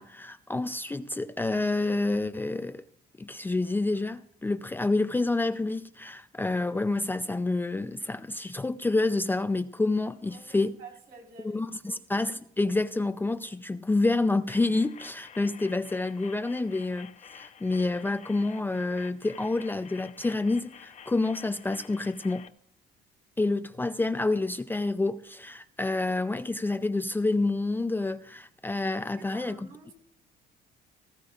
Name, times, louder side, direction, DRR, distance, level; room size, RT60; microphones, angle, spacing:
voice 1, 0.0-2.8 3.2-10.8 11.4-22.5 23.4-29.7, left 2 dB, 10° left, 0.5 m, -28 dB
voice 2, 10.2-12.0 29.2-29.9, right 4 dB, 65° right, 4.5 m, -50 dB
sound 1, 14.5-22.5, left 8 dB, 45° left, 0.9 m, -50 dB
19.0 x 16.0 x 2.5 m
cardioid pair, 110°, 17 cm